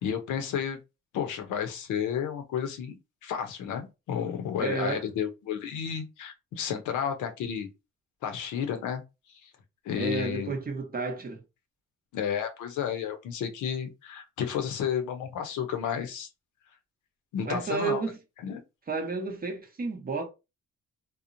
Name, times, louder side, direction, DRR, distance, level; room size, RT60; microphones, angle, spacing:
voice 1, 0.0-0.8 1.1-3.0 3.2-7.7 8.2-9.0 9.4-9.5 9.8-10.5 12.1-16.3 17.3-18.0 18.4-18.6, left 8 dB, 80° left, 0.6 m, -32 dB
voice 2, 4.6-5.0 10.0-11.4 17.4-18.2 18.9-20.2, right 4 dB, 30° right, 0.7 m, -31 dB
2.9 x 2.0 x 2.5 m
cardioid pair, 90°, 30 cm